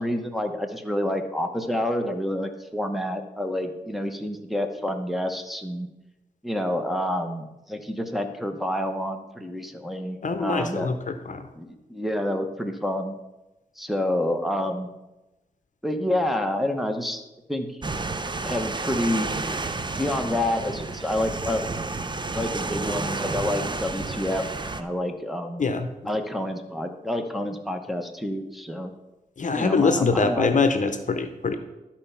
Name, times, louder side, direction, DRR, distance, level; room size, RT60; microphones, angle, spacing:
voice 1, 0.0-5.9 6.4-10.9 11.5-13.1 13.8-14.9 15.8-17.7 18.4-19.3 20.0-21.6 22.3-24.5 24.8-25.6 26.0-28.9 29.5-30.5, left 1 dB, ahead, 4 dB, 1.0 m, -28 dB
voice 2, 10.2-11.5 25.6-25.9 29.4-31.6, left 4 dB, 55° left, 9 dB, 0.7 m, -24 dB
sound 1, 17.8-24.8, right 3 dB, 30° right, 0.7 m, -31 dB
12.5 x 4.5 x 5.7 m, 1.0 s
cardioid pair, 75°, 16 cm